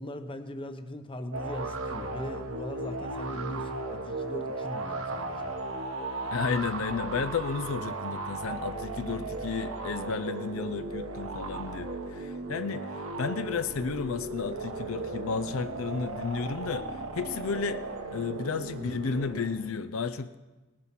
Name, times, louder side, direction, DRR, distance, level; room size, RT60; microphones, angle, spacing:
voice 1, 0.0-5.6, left 1 dB, 25° left, 7 dB, 0.8 m, -40 dB
sound 1, 1.3-19.7, right 2 dB, 70° right, 1.2 m, -36 dB
voice 2, 6.3-17.8 18.1-20.4, left 5 dB, 70° left, 10 dB, 0.5 m, -33 dB
18.5 x 7.5 x 5.9 m, 1.2 s
head